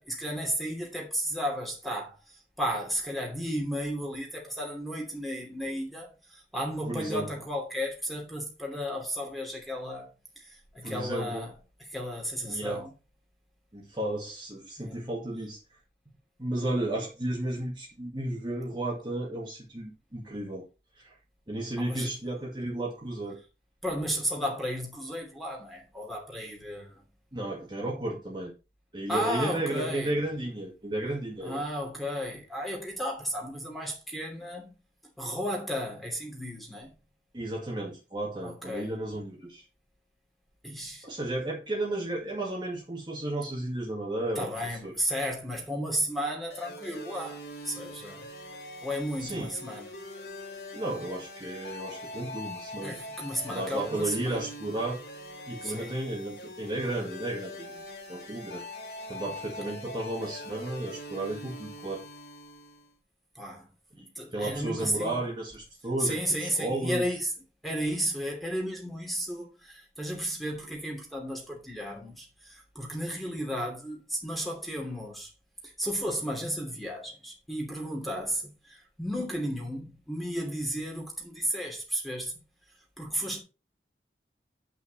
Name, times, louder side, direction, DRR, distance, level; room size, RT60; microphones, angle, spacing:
voice 1, 0.0-10.1 10.4-11.5 11.8-12.9 14.8-15.1 21.8-22.2 23.8-27.0 29.1-30.1 31.4-34.7 35.2-36.9 38.4-38.9 40.6-41.1 44.4-48.3 48.8-49.9 52.8-54.5 55.6-56.0 59.6-59.8 63.3-63.7 64.0-65.2 66.0-67.3 67.6-75.3 75.6-82.4 83.0-83.4, equal, ahead, 2.8 m, -34 dB
voice 2, 6.9-7.3 10.8-11.5 12.4-12.8 13.7-15.6 16.4-20.7 21.0-21.1 21.5-23.4 27.3-28.5 28.9-31.6 37.3-39.6 41.0-44.5 44.8-44.9 49.2-49.5 50.7-53.0 53.5-55.0 55.5-57.8 58.1-58.7 59.1-62.0 63.9-67.1, right 1 dB, 25° right, 2.1 m, -33 dB
sound 1, 46.5-62.9, left 1 dB, 65° left, 2.3 m, -43 dB
9.6 x 5.9 x 4.1 m
head